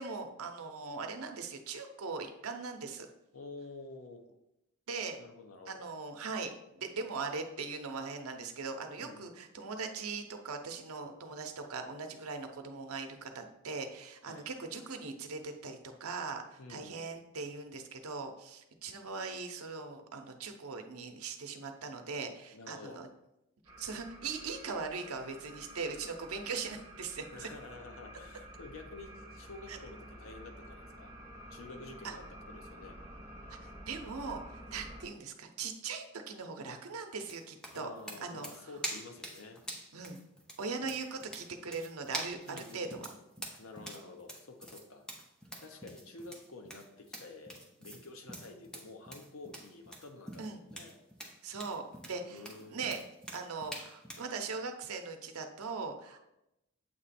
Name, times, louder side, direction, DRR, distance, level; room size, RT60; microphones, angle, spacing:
voice 1, 0.0-3.1 4.9-5.2 5.7-23.1 23.8-27.5 29.7-29.8 32.0-32.1 33.5-37.9 38.2-38.5 39.9-40.2 40.6-43.1 50.4-50.6 51.4-53.0 53.3-56.2, right 4 dB, 85° right, 5 dB, 0.7 m, -40 dB
voice 2, 3.3-4.3 5.2-5.8 9.0-9.4 14.3-14.5 16.6-17.2 22.5-23.1 27.3-31.1 31.5-33.0 37.7-39.6 42.4-43.2 43.6-45.1 45.6-51.0 52.2-53.0, left 3 dB, 70° left, 5 dB, 0.8 m, -50 dB
sound 1, 23.6-35.1, equal, 20° right, 1.3 m, -50 dB
sound 2, 37.2-54.3, right 1 dB, 5° left, 0.7 m, -45 dB
7.8 x 3.0 x 4.2 m, 0.88 s
head